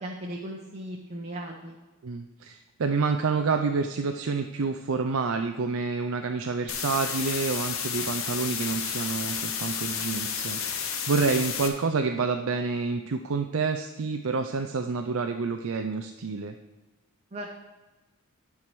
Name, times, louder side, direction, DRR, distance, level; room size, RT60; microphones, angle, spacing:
voice 1, 0.0-1.8 17.3-17.5, right 1 dB, 30° right, -1 dB, 0.9 m, -37 dB
voice 2, 2.0-16.6, right 4 dB, 80° right, 6 dB, 0.5 m, -28 dB
sound 1, 6.7-11.7, left 7 dB, 75° left, 1.1 m, -31 dB
10.5 x 4.8 x 6.0 m, 1.1 s
head